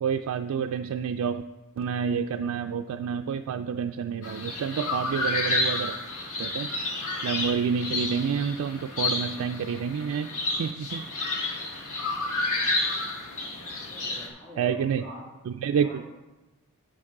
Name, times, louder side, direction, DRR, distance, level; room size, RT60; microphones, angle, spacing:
voice 1, 0.0-1.4 1.8-6.0 6.4-6.7 7.2-10.3 10.6-11.0 11.5-11.6 14.6-15.1 15.5-16.0, right 7 dB, 85° right, 5 dB, 0.3 m, -28 dB
sound 1, 4.2-14.3, left 2 dB, 80° left, 1.5 m, -30 dB
voice 2, 13.9-15.2 15.7-16.0, equal, 20° left, -8 dB, 2.0 m, -44 dB
9.8 x 6.7 x 3.7 m, 1.1 s
head